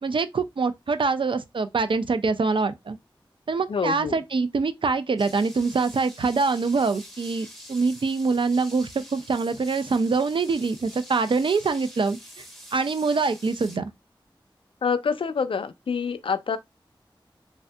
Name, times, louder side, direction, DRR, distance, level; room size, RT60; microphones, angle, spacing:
voice 1, 0.0-3.0 3.5-12.4 12.7-13.9, right 4 dB, 70° right, 0.4 m, -24 dB
voice 2, 3.7-4.2 14.8-16.6, left 6 dB, 80° left, 0.3 m, -26 dB
sound 1, 5.2-13.8, equal, ahead, 0.8 m, -46 dB
3.3 x 2.7 x 2.2 m
wide cardioid pair, 50°, 9 cm